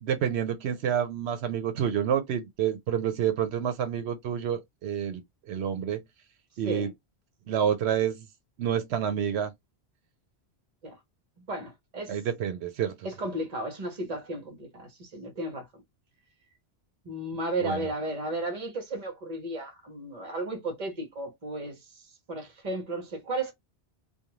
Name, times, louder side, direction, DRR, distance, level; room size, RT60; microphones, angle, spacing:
voice 1, 0.0-5.2 5.5-6.0 6.6-6.9 7.5-8.3 8.6-9.5 12.1-13.1 17.6-17.9, right 9 dB, 80° right, 0.8 m, -28 dB
voice 2, 11.5-12.2 13.0-15.8 17.0-23.5, right 2 dB, 40° right, 1.0 m, -34 dB
2.5 x 2.3 x 3.0 m
omnidirectional pair, 1.1 m